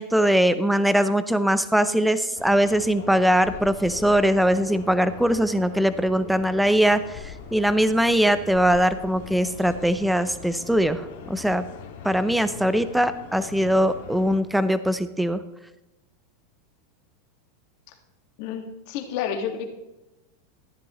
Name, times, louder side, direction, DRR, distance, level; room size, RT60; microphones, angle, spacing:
voice 1, 0.0-11.6 12.0-15.4, equal, ahead, 12 dB, 0.6 m, -21 dB
sound 1, 2.3-14.4, left 6 dB, 80° left, 2.2 m, -42 dB
voice 2, 18.4-19.7, left 8 dB, 60° left, 4 dB, 1.9 m, -30 dB
14.5 x 9.8 x 3.1 m, 0.99 s
supercardioid pair, 125°, 0 cm